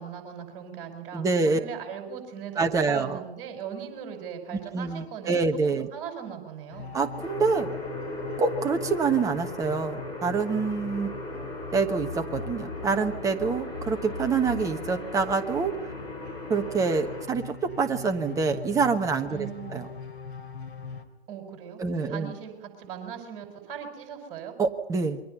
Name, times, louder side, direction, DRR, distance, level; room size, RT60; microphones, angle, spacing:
voice 1, 0.0-6.9 19.3-19.8 21.3-24.5, right 8 dB, 35° right, 5 dB, 6.0 m, -39 dB
voice 2, 1.1-1.6 2.6-3.2 4.7-5.9 6.9-7.7 8.4-11.1 11.7-15.7 16.5-19.9 21.8-22.3 24.6-25.2, right 4 dB, 10° right, 7 dB, 1.2 m, -26 dB
sound 1, 6.7-21.0, left 5 dB, 80° left, 3.3 m, -41 dB
sound 2, 7.2-17.3, left 1 dB, 15° left, 6.1 m, -38 dB
28.0 x 23.0 x 5.6 m, 0.90 s
figure-of-eight pair, 120°, 32 cm